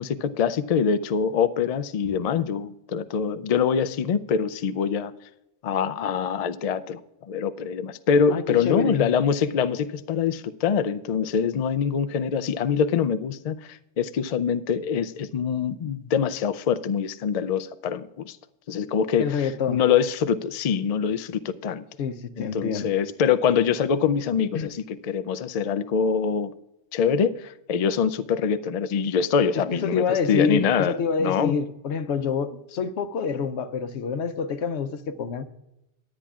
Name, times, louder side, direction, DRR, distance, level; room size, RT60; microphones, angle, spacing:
voice 1, 0.0-5.1 5.6-7.0 7.3-18.4 18.7-21.8 22.4-26.5 26.9-31.6, left 7 dB, 60° left, 0.4 m, -24 dB
voice 2, 8.3-9.1 19.2-19.8 22.0-22.9 24.5-24.7 29.7-35.4, left 6 dB, 80° left, 0.9 m, -27 dB
20.0 x 8.7 x 2.4 m
omnidirectional pair, 1.2 m